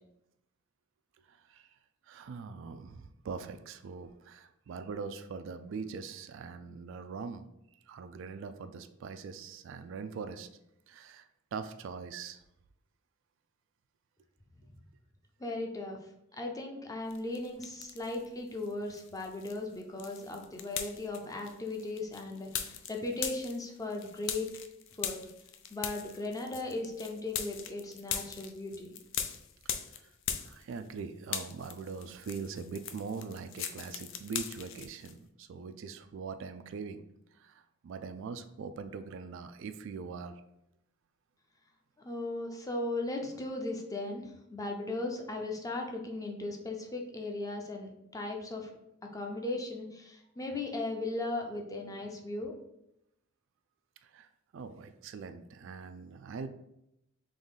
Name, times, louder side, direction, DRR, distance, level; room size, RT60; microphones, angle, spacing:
voice 1, 1.3-1.7 2.1-7.5 7.9-10.5 10.9-11.3 11.5-12.4 30.0-30.1 30.4-37.0 37.3-40.4 54.0-56.5, right 5 dB, 65° right, 10 dB, 0.3 m, -42 dB
voice 2, 15.4-16.0 16.3-24.5 25.0-25.3 25.7-28.9 42.0-48.7 49.1-52.6, left 2 dB, 15° left, 2 dB, 0.6 m, -37 dB
sound 1, 17.1-18.3 18.6-31.0 31.2-35.1, left 8 dB, 65° left, 0.4 m, -40 dB
3.8 x 3.0 x 3.9 m, 0.82 s
head